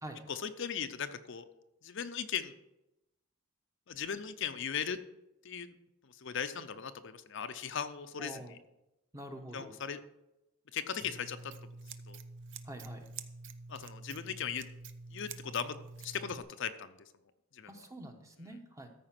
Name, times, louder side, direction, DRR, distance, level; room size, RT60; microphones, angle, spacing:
voice 1, 0.3-1.5 1.8-2.5 3.9-5.0 5.4-5.7 6.0-8.6 9.5-10.0 10.7-11.5 12.1-12.2 13.7-14.6 15.1-17.0 17.5-17.8, left 7 dB, 60° left, 9 dB, 0.6 m, -38 dB
voice 2, 8.2-8.5 9.1-9.7 12.7-13.0 17.7-18.9, right 1 dB, 15° right, 5 dB, 0.9 m, -46 dB
Scissors, 11.0-16.4, right 4 dB, 55° right, 0.6 m, -48 dB
14.0 x 5.0 x 5.9 m, 0.91 s
head